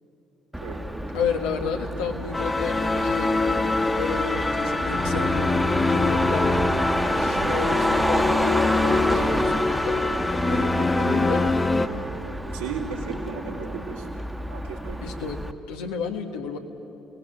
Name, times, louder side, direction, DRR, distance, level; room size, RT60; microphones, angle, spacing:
Motor vehicle (road), 0.5-15.5, right 1 dB, 5° right, 1.4 m, -30 dB
voice 1, 1.1-3.4 4.0-11.6 15.0-16.6, left 5 dB, 80° left, 4 dB, 1.6 m, -32 dB
sound 1, 2.3-11.9, left 2 dB, 25° left, 1.5 m, -24 dB
sound 2, 4.2-8.5, left 3 dB, 65° left, 4.7 m, -39 dB
voice 2, 12.5-14.1 14.5-15.0, right 5 dB, 90° right, -4 dB, 3.5 m, -34 dB
29.5 x 19.0 x 8.1 m, 2.9 s
hypercardioid pair, 50°, 0 cm